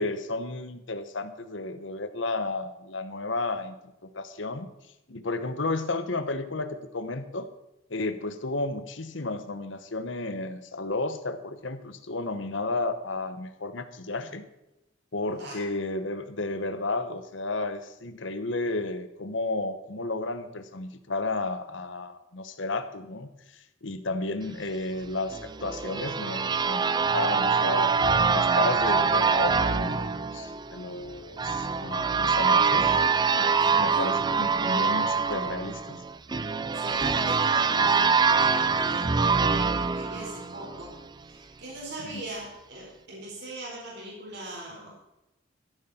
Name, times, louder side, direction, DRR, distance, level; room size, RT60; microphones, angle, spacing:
voice 1, 0.0-4.7 5.1-7.5 7.9-14.5 15.1-28.0 28.3-32.8 33.4-36.0 42.0-42.2, left 2 dB, 70° left, 10 dB, 1.2 m, -32 dB
sound 1, 25.3-41.0, right 5 dB, 20° right, 0.4 m, -24 dB
voice 2, 32.7-33.0 33.5-34.1 36.7-44.9, right 1 dB, 60° right, -3 dB, 4.8 m, -40 dB
14.0 x 11.5 x 4.4 m, 0.93 s
head